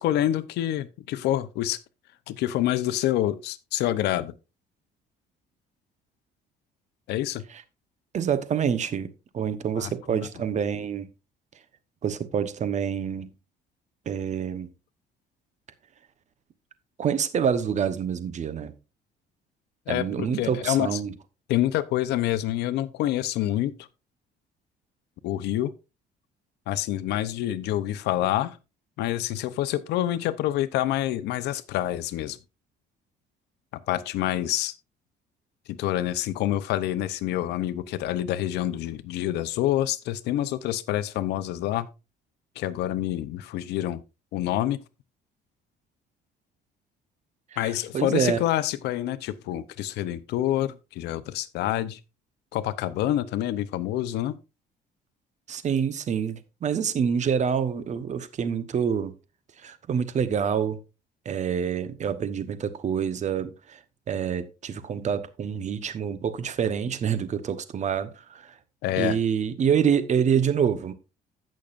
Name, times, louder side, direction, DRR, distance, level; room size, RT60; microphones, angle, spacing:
voice 1, 0.0-1.8 2.3-4.3 7.1-7.4 9.8-10.3 19.9-21.0 21.5-23.8 25.2-25.7 26.7-28.6 29.0-32.4 33.9-34.7 35.7-41.9 42.6-44.0 44.3-44.8 47.6-52.0 52.5-54.4 68.8-69.2, left 13 dB, 80° left, 0.7 m, -27 dB
voice 2, 8.1-11.1 12.0-13.3 14.1-14.7 17.0-18.7 19.9-21.1 47.6-48.4 55.5-59.1 59.6-60.8 61.2-63.8 64.1-68.5 69.0-70.9, right 7 dB, 45° right, 1.0 m, -27 dB
15.5 x 6.4 x 2.5 m
cardioid pair, 110°, 17 cm